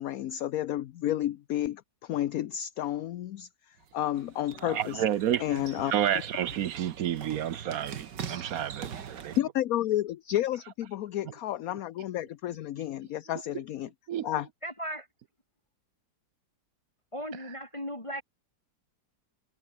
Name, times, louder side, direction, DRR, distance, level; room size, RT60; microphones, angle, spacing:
voice 1, 0.0-5.0 5.4-5.9 9.4-13.9 14.2-14.5, left 13 dB, 65° left, 1.0 m, -31 dB
sound 1, 3.8-9.4, right 7 dB, 80° right, 2.2 m, -43 dB
voice 2, 4.6-9.3 14.1-14.3, right 10 dB, 65° right, 1.1 m, -30 dB
voice 3, 14.6-15.1 17.1-18.2, equal, 15° left, 3.4 m, -36 dB
omnidirectional pair, 1.8 m